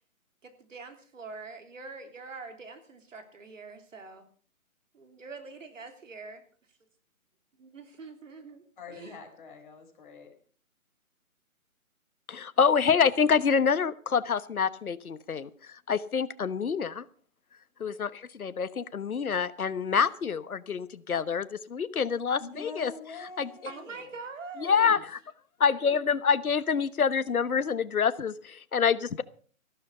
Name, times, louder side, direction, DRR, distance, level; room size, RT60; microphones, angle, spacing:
voice 1, 0.4-4.2 4.9-6.4 7.6-8.6 8.9-9.2 23.7-25.0, right 4 dB, 60° right, 7 dB, 3.4 m, -44 dB
voice 2, 8.8-10.3 22.4-24.0, left 4 dB, 35° left, 2 dB, 4.4 m, -44 dB
voice 3, 12.3-17.1 17.8-22.9 23.4-23.5 24.6-25.2 25.6-29.2, left 6 dB, 85° left, 15 dB, 1.2 m, -27 dB
15.0 x 12.5 x 5.5 m, 0.44 s
hypercardioid pair, 165°, 42 cm